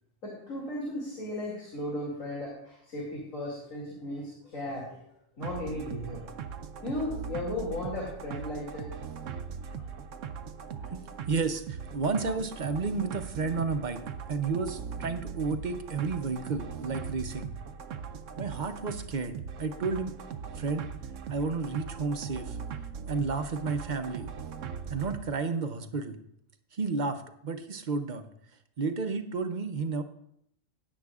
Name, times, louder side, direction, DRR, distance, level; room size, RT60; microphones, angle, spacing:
voice 1, 0.2-5.0 5.4-6.3 6.8-8.9 9.8-9.9 10.8-10.9, left 1 dB, 80° left, -4 dB, 2.9 m, -36 dB
sound 1, 5.4-25.2, right 6 dB, 75° right, 0.9 m, -40 dB
voice 2, 10.9-14.0 14.3-17.5 18.4-20.1 20.6-20.9 21.3-22.6 23.1-24.3 24.9-26.2 26.7-28.2 28.8-30.0, right 4 dB, 45° right, 8 dB, 0.7 m, -32 dB
16.0 x 9.6 x 2.4 m, 0.74 s
omnidirectional pair, 1.4 m